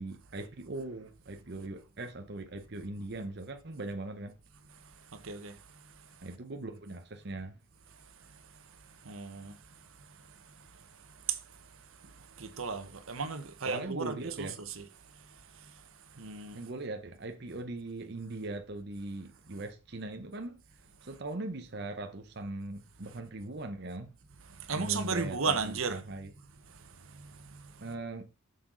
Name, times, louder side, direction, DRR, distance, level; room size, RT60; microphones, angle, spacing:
voice 1, 0.0-4.3 6.2-7.6 13.7-14.6 16.5-20.6 21.0-24.2 24.7-26.3 27.8-28.2, right 2 dB, 50° right, 0.8 m, -40 dB
voice 2, 5.2-5.6 9.0-9.6 11.3-11.4 12.4-14.5 14.8-14.9 16.2-16.6 24.7-26.0 27.1-27.6, right 5 dB, 80° right, 1.2 m, -34 dB
7.6 x 6.8 x 3.9 m
head